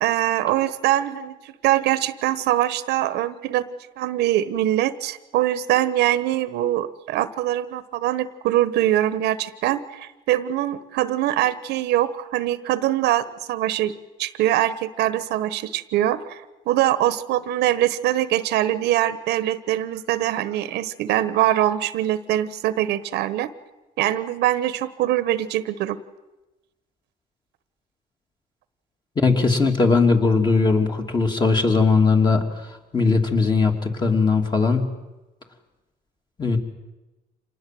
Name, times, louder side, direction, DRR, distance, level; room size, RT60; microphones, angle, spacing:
voice 1, 0.0-3.6 4.0-13.9 14.2-23.5 24.0-26.0, right 13 dB, 85° right, 14 dB, 1.2 m, -23 dB
voice 2, 29.1-32.4 32.9-34.9 36.4-36.6, left 4 dB, 25° left, 3 dB, 3.1 m, -19 dB
26.5 x 19.5 x 7.8 m, 1.0 s
cardioid pair, 110°, 17 cm